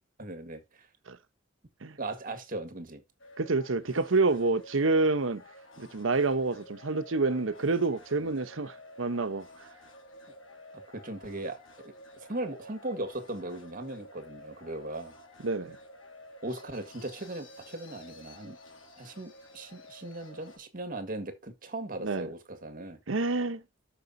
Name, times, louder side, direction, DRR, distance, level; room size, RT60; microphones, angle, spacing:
voice 1, 0.2-0.9 2.0-3.0 8.2-8.3 10.3-10.4 10.9-15.1 16.4-18.6 19.0-23.0, right 2 dB, 45° right, 1.7 m, -38 dB
sound 1, 3.2-20.6, left 1 dB, 90° left, 2.6 m, -51 dB
voice 2, 3.4-5.4 5.8-9.5 15.4-15.8 22.0-22.3 23.1-23.6, right 3 dB, 85° right, 0.9 m, -28 dB
13.5 x 5.1 x 2.7 m
head